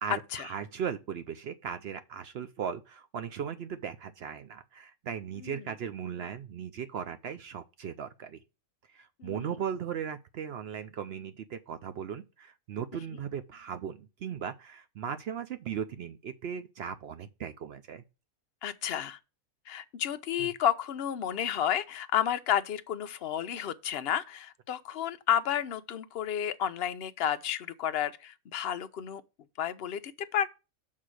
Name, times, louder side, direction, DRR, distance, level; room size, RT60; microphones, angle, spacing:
voice 1, 0.0-8.4 8.9-18.0 20.4-20.5, right 8 dB, 65° right, 0.6 m, -37 dB
voice 2, 18.6-19.2 19.7-29.2 29.6-30.5, left 10 dB, 60° left, 0.6 m, -31 dB
6.5 x 3.8 x 6.1 m
omnidirectional pair, 1.5 m